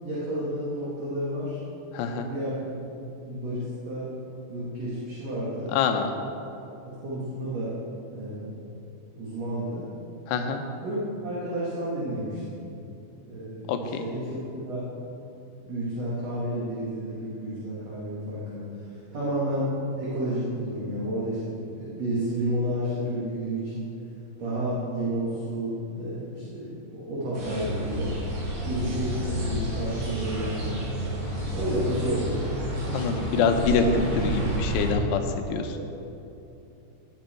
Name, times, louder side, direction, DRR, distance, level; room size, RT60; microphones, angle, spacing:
voice 1, 0.0-1.6 2.1-4.0 4.5-5.7 6.8-7.8 8.1-8.5 9.1-9.9 10.8-12.6 13.3-14.8 15.6-23.9 24.4-28.2 28.7-30.8 31.5-32.6 35.7-35.9, right 1 dB, 45° right, -8 dB, 2.9 m, -31 dB
voice 2, 1.9-2.3 5.7-6.1 10.3-10.6 13.7-14.0 32.9-35.2 35.5-35.8, left 5 dB, 85° left, 5 dB, 3.0 m, -25 dB
sound 1, 27.3-34.9, right 1 dB, 85° right, 5.4 m, -30 dB
17.0 x 10.0 x 4.5 m, 2.8 s
omnidirectional pair, 4.8 m